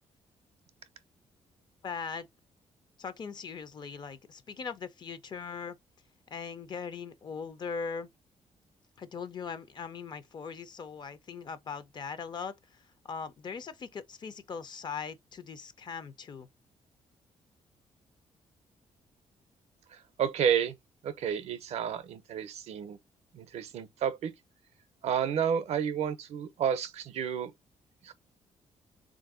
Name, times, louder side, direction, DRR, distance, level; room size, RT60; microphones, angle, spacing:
voice 1, 1.8-2.3 3.0-5.8 6.3-8.1 9.0-12.5 13.1-16.5, left 5 dB, 40° left, 0.5 m, -40 dB
voice 2, 20.2-20.7 21.0-23.0 23.3-24.3 25.0-27.5 28.0-28.1, right 8 dB, 65° right, 0.5 m, -30 dB
3.3 x 2.5 x 3.6 m
cardioid pair, 130°, 12 cm